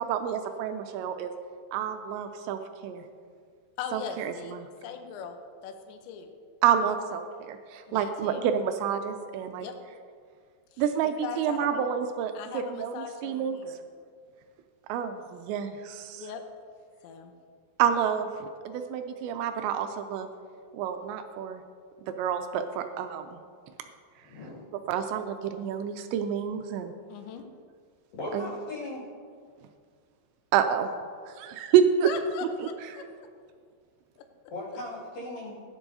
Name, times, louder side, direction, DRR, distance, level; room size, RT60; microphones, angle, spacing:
voice 1, 0.0-1.3 1.7-3.0 3.9-4.7 6.6-9.7 10.8-13.0 13.2-13.6 14.9-16.2 17.8-20.3 20.7-21.6 22.1-23.4 24.9-26.9 28.3-28.5 30.5-30.9 31.3-32.1 32.6-32.7, right 8 dB, 85° right, 7 dB, 2.5 m, -28 dB
voice 2, 3.8-5.4 5.6-6.3 7.9-8.5 9.6-9.8 10.7-10.8 11.2-11.9 12.3-13.8 16.2-16.4 17.0-17.3 27.1-27.4 32.0-33.1 34.2-34.3, left 7 dB, 75° left, 5 dB, 3.0 m, -39 dB
voice 3, 24.2-24.6 28.1-29.0 34.5-35.6, left 2 dB, 50° left, -5 dB, 3.7 m, -37 dB
16.0 x 10.5 x 2.7 m, 2.1 s
omnidirectional pair, 5.5 m